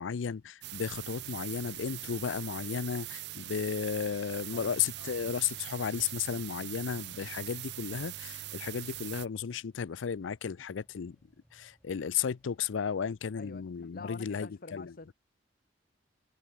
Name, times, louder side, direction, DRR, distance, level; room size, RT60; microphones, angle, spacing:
voice 1, 0.0-11.2 11.5-14.9, left 7 dB, 85° left, 0.5 m, -34 dB
sound 1, 0.6-9.3, right 15 dB, 60° right, 0.5 m, -42 dB
sound 2, 5.0-13.0, equal, 5° left, 3.7 m, -69 dB
voice 2, 13.4-15.1, left 3 dB, 50° left, 1.3 m, -47 dB
head